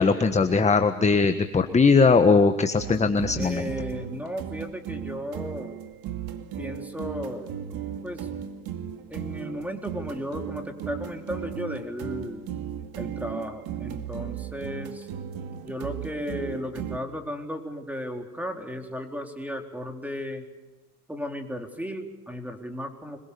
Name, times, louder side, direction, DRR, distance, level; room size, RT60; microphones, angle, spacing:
voice 1, 0.0-3.7, left 4 dB, 15° left, 8 dB, 1.5 m, -20 dB
sound 1, 2.8-17.0, right 9 dB, 50° right, 2.3 m, -36 dB
voice 2, 3.3-5.8 6.6-7.5 8.0-8.3 9.1-12.4 13.0-15.1 15.6-20.5 21.1-23.2, equal, 5° right, 4 dB, 3.9 m, -35 dB
25.5 x 22.5 x 7.0 m, 1.1 s
supercardioid pair, 100°, 45 cm